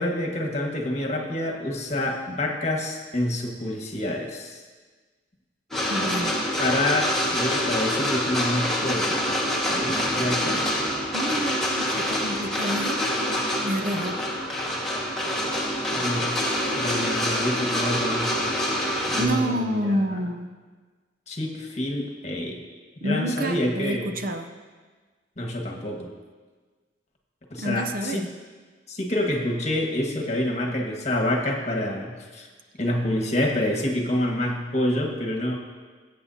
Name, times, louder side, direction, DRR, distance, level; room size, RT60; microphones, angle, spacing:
voice 1, 0.0-4.6 6.6-9.2 9.7-10.7 15.9-16.3 16.6-18.5 19.1-20.2 21.3-22.6 23.0-24.2 25.4-26.1 27.5-28.2 28.9-32.5 32.8-35.6, left 1 dB, 40° left, 1 dB, 1.6 m, -27 dB
sound 1, 5.7-19.3, equal, ahead, 1.6 m, -26 dB
voice 2, 5.9-6.3 11.1-13.0 13.6-14.2 19.2-20.5 23.0-24.5 27.6-28.3, equal, 50° right, 6 dB, 0.7 m, -28 dB
20.5 x 8.4 x 2.8 m, 1.4 s
head